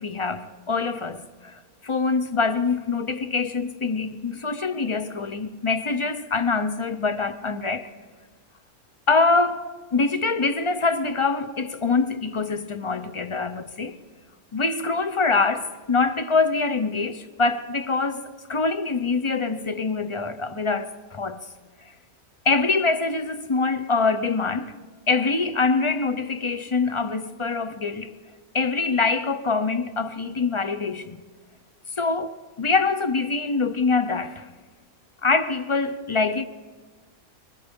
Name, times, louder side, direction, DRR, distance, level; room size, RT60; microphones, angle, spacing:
voice 1, 0.0-7.9 9.1-14.0 14.5-21.4 22.4-24.8 25.1-28.1 28.5-31.2 32.0-34.5 35.2-36.4, left 4 dB, 35° left, 0.5 m, -24 dB
24.5 x 22.0 x 5.3 m
omnidirectional pair, 1.5 m